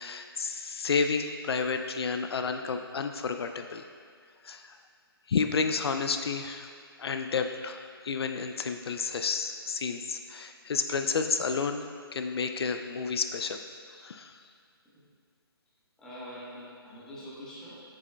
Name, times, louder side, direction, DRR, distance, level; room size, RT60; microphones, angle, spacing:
voice 1, 0.0-3.8 4.4-4.8 5.3-6.7 7.0-11.9 12.1-13.6 13.9-14.4, left 5 dB, 75° left, 7 dB, 0.4 m, -31 dB
voice 2, 16.0-17.8, equal, 5° left, -9 dB, 1.1 m, -44 dB
7.6 x 6.1 x 2.2 m, 2.2 s
hypercardioid pair, 155°, 13 cm